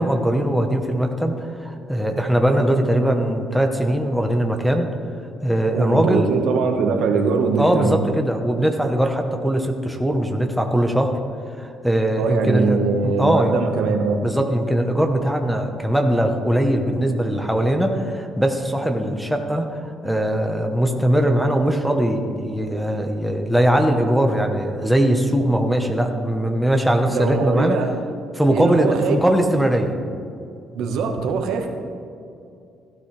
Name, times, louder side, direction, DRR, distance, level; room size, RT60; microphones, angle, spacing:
voice 1, 0.0-4.9 5.4-6.3 7.6-11.1 11.6-12.8 13.0-13.5 14.2-27.8 28.3-29.9, right 1 dB, ahead, 3 dB, 1.1 m, -20 dB
voice 2, 5.7-8.0 12.2-14.2 27.1-27.9 28.5-29.2 30.7-31.7, right 4 dB, 85° right, 4 dB, 1.5 m, -22 dB
16.5 x 12.5 x 3.4 m, 2.5 s
cardioid pair, 115°, 0 cm